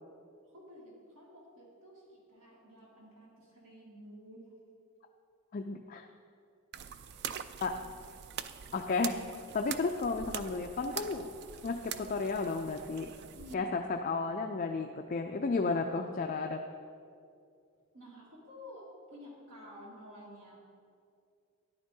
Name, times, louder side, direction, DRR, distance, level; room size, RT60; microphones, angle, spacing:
voice 1, 0.5-4.4 7.1-7.2 13.4-13.7 17.9-20.6, equal, 70° right, -5 dB, 2.1 m, -51 dB
voice 2, 5.5-6.1 7.6-7.8 8.7-9.2 9.5-11.3 11.6-13.1 13.5-16.6, left 4 dB, 40° left, 4 dB, 0.3 m, -33 dB
sound 1, 6.7-13.5, right 8 dB, 50° right, 0.3 m, -43 dB
13.0 x 10.5 x 2.7 m, 2.4 s
head